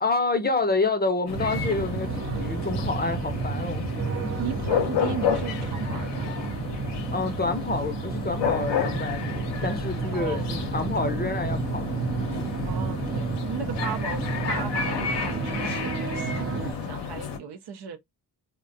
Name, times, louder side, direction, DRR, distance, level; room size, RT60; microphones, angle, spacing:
voice 1, 0.0-2.1 2.4-3.9 4.2-4.3 7.1-11.9, left 3 dB, 25° left, 0.6 m, -28 dB
sound 1, 1.3-17.4, left 7 dB, 80° left, 0.7 m, -31 dB
sound 2, 1.3-16.7, right 5 dB, 35° right, 0.4 m, -31 dB
voice 2, 4.4-6.4 10.1-10.5 10.8-11.2 12.6-18.0, right 6 dB, 70° right, 0.7 m, -36 dB
2.4 x 2.1 x 2.5 m
cardioid pair, 55°, 41 cm